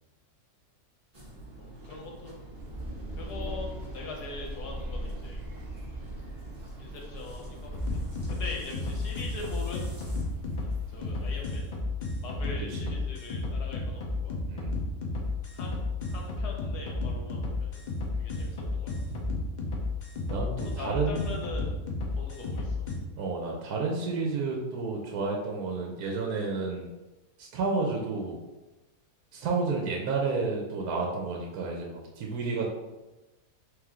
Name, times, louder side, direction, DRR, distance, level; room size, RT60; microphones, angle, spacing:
sound 1, 1.1-10.2, right 1 dB, 20° right, 1.4 m, -46 dB
voice 1, 1.6-2.4 3.2-5.4 6.8-8.0 8.3-9.9 10.9-11.7 12.2-14.6 15.5-15.8 16.1-17.8 18.2-19.2 20.8-22.8, left 3 dB, 85° left, -1 dB, 1.5 m, -42 dB
sound 2, 2.5-11.5, right 1 dB, 50° right, 0.9 m, -41 dB
sound 3, 7.7-23.0, left 3 dB, 70° left, 0.4 m, -32 dB
voice 2, 14.5-14.8 20.3-21.4 23.2-26.9 27.4-28.4 29.3-32.7, right 4 dB, 75° right, 0 dB, 1.1 m, -31 dB
3.4 x 3.1 x 3.6 m, 1.1 s
omnidirectional pair, 1.7 m